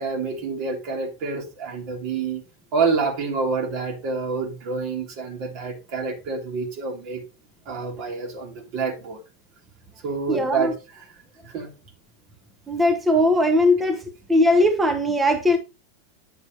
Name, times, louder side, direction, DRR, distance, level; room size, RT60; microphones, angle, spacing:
voice 1, 0.0-2.4 2.7-7.2 7.7-9.2 10.0-11.1 11.4-11.7, right 4 dB, 55° right, 3.2 m, -27 dB
voice 2, 10.3-10.7 12.7-14.0 14.3-15.6, left 1 dB, 10° right, 1.0 m, -19 dB
9.0 x 6.7 x 3.0 m
hypercardioid pair, 110°, 0 cm